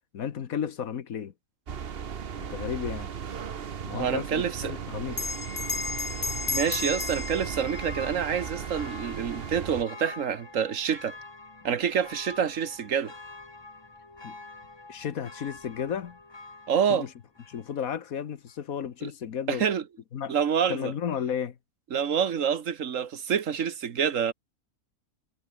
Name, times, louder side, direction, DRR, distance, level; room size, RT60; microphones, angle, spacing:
voice 1, 0.1-1.3 2.4-3.1 3.8-5.2 14.2-14.3 14.9-16.2 16.9-17.1 17.5-19.6 20.1-20.3 20.7-21.6, left 8 dB, 75° left, 1.6 m, -33 dB
sound 1, 1.7-9.9, right 7 dB, 45° right, 1.1 m, -37 dB
voice 2, 3.9-4.7 6.5-11.2 11.6-13.1 16.7-17.1 19.0-19.1 19.5-19.8 20.3-20.9 21.9-24.3, right 7 dB, 65° right, 1.6 m, -27 dB
Church bell, 4.4-18.1 18.5-18.6, left 3 dB, 20° left, 1.3 m, -47 dB
Bell, 5.1-10.0, left 4 dB, 35° left, 1.8 m, -35 dB
omnidirectional pair, 1.5 m